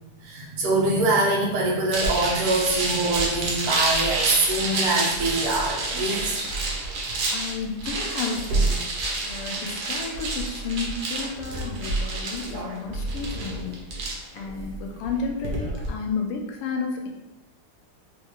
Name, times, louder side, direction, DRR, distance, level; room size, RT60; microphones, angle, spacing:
voice 1, 0.2-6.5, right 2 dB, 85° right, -3 dB, 1.8 m, -24 dB
sound 1, 1.9-15.9, right 2 dB, 65° right, 1.0 m, -28 dB
voice 2, 7.3-8.9 9.2-14.1 14.3-17.1, left 4 dB, 90° left, 1 dB, 1.6 m, -32 dB
4.5 x 2.3 x 2.9 m, 0.94 s
omnidirectional pair, 2.4 m